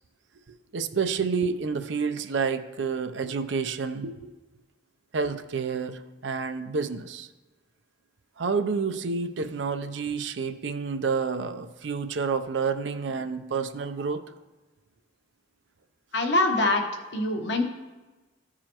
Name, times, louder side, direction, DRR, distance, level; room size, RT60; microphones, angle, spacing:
voice 1, 0.7-4.3 5.1-7.3 8.4-14.2, right 5 dB, 70° right, 8 dB, 0.5 m, -29 dB
voice 2, 16.1-16.8 17.1-17.6, left 2 dB, 60° left, 3 dB, 1.0 m, -23 dB
14.5 x 4.9 x 2.9 m, 1.2 s
head